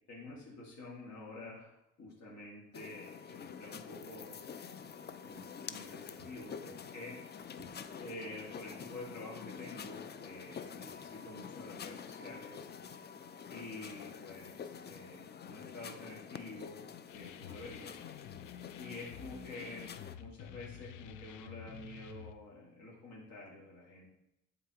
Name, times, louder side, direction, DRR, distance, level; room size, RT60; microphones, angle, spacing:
voice 1, 0.1-1.7 2.0-4.4 4.8-12.7 13.5-16.9 17.1-17.9 18.8-24.0, left 2 dB, 65° left, -5 dB, 1.9 m, -48 dB
sound 1, 2.7-20.2, left 7 dB, 35° left, 0.4 m, -47 dB
sound 2, 17.1-22.3, left 11 dB, 90° left, 0.5 m, -50 dB
11.0 x 3.9 x 2.9 m, 0.85 s
cardioid pair, 90°, 30 cm